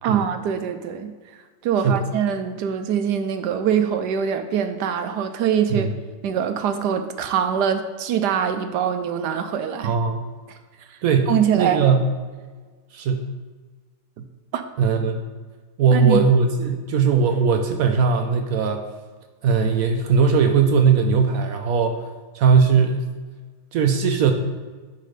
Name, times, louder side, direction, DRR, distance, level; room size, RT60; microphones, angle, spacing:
voice 1, 0.0-5.9 6.2-9.9 10.5-11.0 11.3-11.8 14.2-14.3 14.5-14.6 15.9-16.2, right 8 dB, 70° right, 8 dB, 1.0 m, -24 dB
voice 2, 9.8-10.2 11.0-12.0 12.9-13.3 14.8-15.2 15.8-18.8 19.4-22.0 22.3-23.1 23.7-24.3, right 5 dB, 90° right, 5 dB, 0.7 m, -19 dB
10.5 x 4.2 x 5.0 m, 1.4 s
omnidirectional pair, 2.2 m